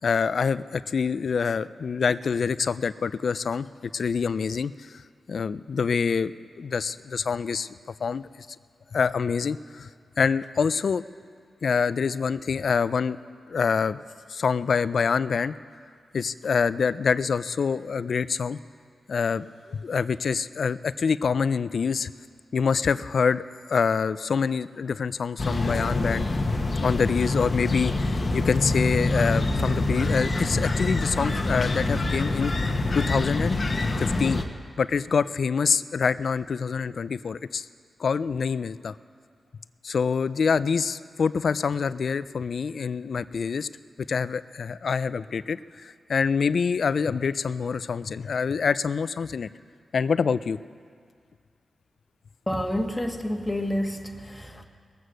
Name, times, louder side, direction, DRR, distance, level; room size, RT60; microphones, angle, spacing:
voice 1, 0.0-5.0 5.3-6.3 6.6-7.8 8.0-8.5 8.9-9.9 10.2-11.0 11.6-13.2 13.5-14.0 14.3-15.6 16.1-18.6 19.1-22.1 22.5-26.3 26.8-32.5 32.9-33.6 34.0-34.4 34.8-37.7 38.0-39.0 39.8-43.7 44.1-49.5 49.9-50.6, left 5 dB, 70° left, 16 dB, 0.3 m, -26 dB
sound 1, 25.4-34.4, left 2 dB, 45° left, 1.0 m, -26 dB
voice 2, 52.5-54.7, left 1 dB, 15° left, 3 dB, 1.5 m, -29 dB
20.5 x 8.1 x 6.3 m, 2.1 s
cardioid pair, 45°, 0 cm